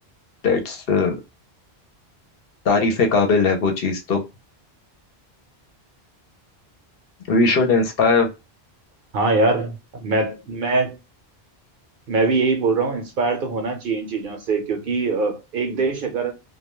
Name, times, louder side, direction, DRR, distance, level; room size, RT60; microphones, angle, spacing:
voice 1, 0.4-1.1 2.6-4.2 7.3-8.3, left 4 dB, 65° left, 0.9 m, -19 dB
voice 2, 9.1-11.0 12.1-16.3, right 3 dB, 60° right, 0.8 m, -22 dB
2.2 x 2.2 x 3.0 m
omnidirectional pair, 1.1 m